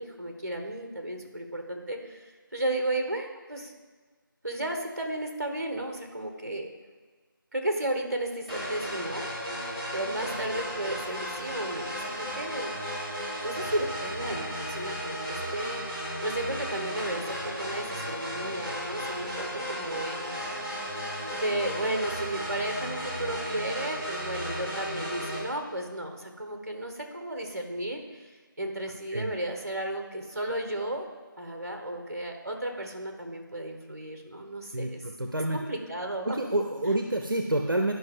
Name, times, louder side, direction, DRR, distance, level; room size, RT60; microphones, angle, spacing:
voice 1, 0.0-3.7 4.4-6.7 7.5-9.3 9.9-12.8 13.4-20.2 21.3-28.3 28.6-31.1 31.4-35.0 35.5-36.4, right 1 dB, 45° right, 4 dB, 1.3 m, -34 dB
sound 1, 8.5-25.4, equal, 25° right, 2.5 m, -35 dB
voice 2, 34.7-35.6 36.2-37.9, right 1 dB, 70° right, 4 dB, 0.8 m, -28 dB
12.0 x 5.4 x 3.8 m, 1.4 s
figure-of-eight pair, 170°, 12 cm